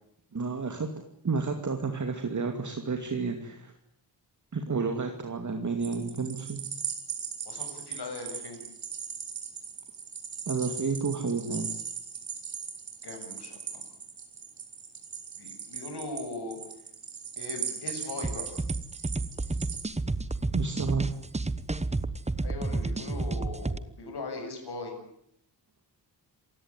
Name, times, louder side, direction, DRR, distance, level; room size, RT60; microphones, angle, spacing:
voice 1, 0.3-0.9 1.2-3.7 4.5-6.6 10.5-11.7 20.5-21.1, right 4 dB, 40° right, 5 dB, 2.6 m, -30 dB
sound 1, 5.8-19.8, right 7 dB, 80° right, 5.6 m, -38 dB
voice 2, 7.4-8.6 13.0-13.8 15.4-16.6 17.4-18.5 22.4-25.0, left 3 dB, 60° left, 3 dB, 6.9 m, -39 dB
sound 2, 18.2-23.8, right 2 dB, 15° right, 1.1 m, -31 dB
27.5 x 17.0 x 9.8 m, 0.75 s
wide cardioid pair, 120°, 44 cm